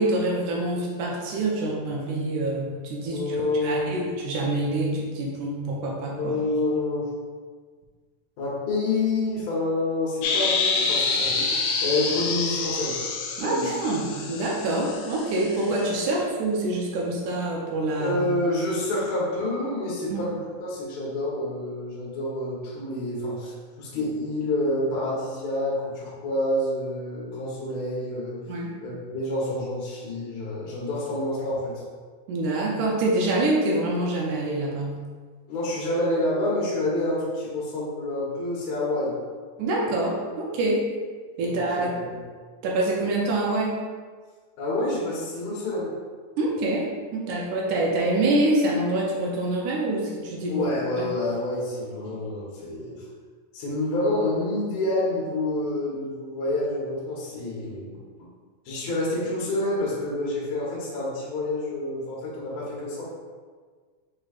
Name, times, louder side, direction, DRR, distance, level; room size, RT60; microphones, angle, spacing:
voice 1, 0.0-6.4 13.4-18.2 20.1-20.2 28.5-28.7 32.3-35.0 39.6-40.9 41.4-41.9 42.6-43.8 46.4-50.7, right 2 dB, 80° right, -3 dB, 1.9 m, -26 dB
voice 2, 3.1-3.9 6.2-7.0 8.4-13.0 13.4-13.7 18.0-28.4 28.8-31.8 35.5-39.1 41.4-42.2 44.6-45.9 50.5-53.0 53.5-57.9 58.7-63.0, left 2 dB, 65° left, -7 dB, 2.1 m, -28 dB
sound 1, 10.2-16.1, left 4 dB, 85° left, 2.3 m, -27 dB
6.3 x 3.0 x 2.4 m, 1.5 s
omnidirectional pair, 4.0 m